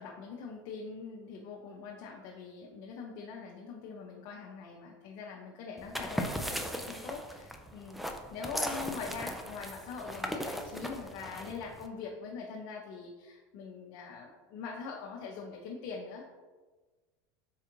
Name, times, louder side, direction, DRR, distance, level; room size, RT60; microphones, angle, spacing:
voice 1, 0.0-16.3, left 5 dB, 60° left, -1 dB, 0.5 m, -43 dB
sound 1, 5.8-11.9, equal, ahead, 0.3 m, -38 dB
4.4 x 2.4 x 2.9 m, 1.3 s
hypercardioid pair, 100°, 10 cm